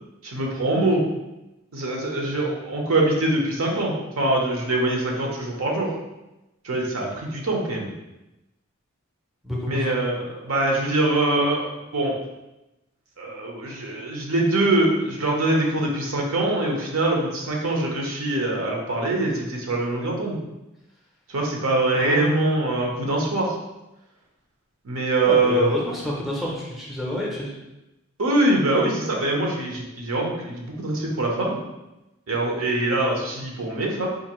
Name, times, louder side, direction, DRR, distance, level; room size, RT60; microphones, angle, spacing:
voice 1, 0.2-1.0 1.7-5.9 6.6-7.9 9.7-12.1 13.2-20.4 21.3-23.5 24.8-25.7 28.2-31.6 32.3-34.1, right 2 dB, 75° right, -1 dB, 0.8 m, -23 dB
voice 2, 9.4-10.0 21.9-22.6 25.3-27.5, left 1 dB, ahead, -4 dB, 0.5 m, -29 dB
3.8 x 2.6 x 2.9 m, 0.96 s
head